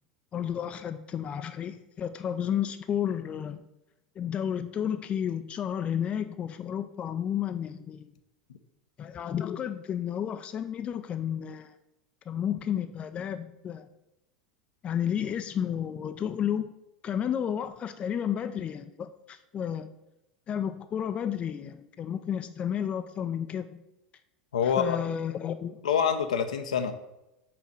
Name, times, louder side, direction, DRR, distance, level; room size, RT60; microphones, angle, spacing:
voice 1, 0.3-3.6 4.2-8.1 9.0-11.7 12.3-13.9 14.8-16.7 17.0-19.9 20.5-23.8 24.6-25.8, left 9 dB, 30° left, 9 dB, 0.4 m, -32 dB
voice 2, 24.5-25.0 25.8-26.9, left 7 dB, 75° left, 8 dB, 0.6 m, -26 dB
5.9 x 4.0 x 6.1 m, 0.91 s
hypercardioid pair, 85°, 4 cm